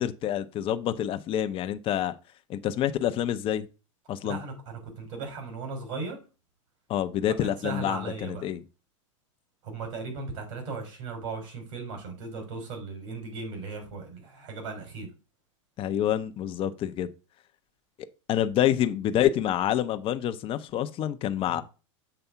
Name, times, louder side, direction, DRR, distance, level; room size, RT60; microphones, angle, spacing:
voice 1, 0.0-2.1 2.5-3.7 4.1-4.4 6.9-8.6 15.8-17.1 18.3-21.6, left 11 dB, 35° left, 0.6 m, -27 dB
voice 2, 4.2-6.2 7.4-8.5 9.6-15.1 21.5-21.6, right 4 dB, 65° right, 3.5 m, -37 dB
6.9 x 3.5 x 5.7 m
hypercardioid pair, 110°, 16 cm